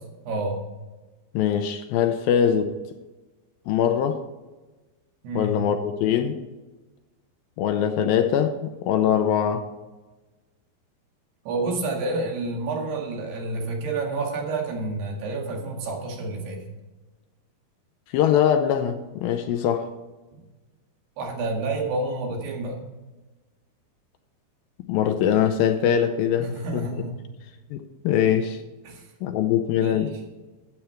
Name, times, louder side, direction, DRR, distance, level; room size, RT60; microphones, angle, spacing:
voice 1, 0.3-0.6 5.2-5.6 11.5-16.6 20.3-20.4 21.2-22.8 26.4-27.1 28.8-29.1 29.8-30.2, right 2 dB, 80° right, 0 dB, 4.1 m, -29 dB
voice 2, 1.3-2.7 3.7-4.2 5.3-6.4 7.6-9.6 18.1-19.9 24.9-26.9 27.7-28.6 29.2-30.1, left 9 dB, 75° left, 7 dB, 2.3 m, -22 dB
12.5 x 8.5 x 4.5 m, 1.2 s
omnidirectional pair, 4.6 m